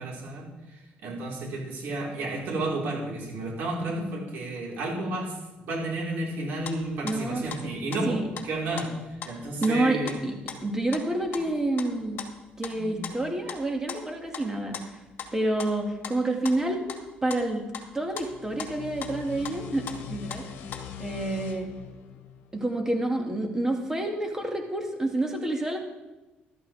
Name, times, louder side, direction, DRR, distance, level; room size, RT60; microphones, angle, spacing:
voice 1, 0.0-5.3 5.6-8.2 8.4-10.2 12.7-13.1, right 2 dB, 75° right, -3 dB, 4.4 m, -32 dB
sound 1, 6.6-9.8 10.1-10.2 10.5-14.5 14.7-14.9 15.2-15.3 15.6-16.2 16.4-19.6 19.9-20.9, left 7 dB, 60° left, 2.0 m, -39 dB
voice 2, 7.0-7.4 8.1-8.3 9.6-10.3 10.6-12.2 12.6-15.0 15.3-16.8 17.2-17.7 17.9-20.4 21.0-21.7 22.5-25.8, right 2 dB, 15° right, 2 dB, 2.2 m, -28 dB
sound 2, 18.1-23.5, left 8 dB, 80° left, 1.3 m, -42 dB
13.5 x 12.5 x 3.5 m, 1.1 s
cardioid pair, 105°, 4 cm